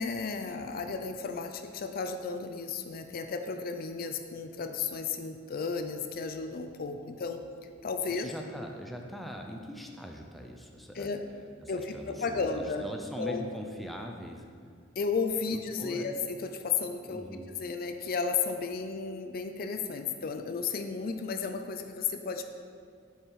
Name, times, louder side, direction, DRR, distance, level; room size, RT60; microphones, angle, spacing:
voice 1, 0.0-7.4 7.8-8.3 10.9-11.2 11.7-12.8 13.2-13.5 15.0-22.4, left 5 dB, 50° left, 7 dB, 0.5 m, -33 dB
voice 2, 8.2-11.1 11.6-14.5 15.5-16.1 17.1-17.5, equal, ahead, 1 dB, 0.5 m, -41 dB
7.2 x 5.7 x 4.7 m, 2.1 s
head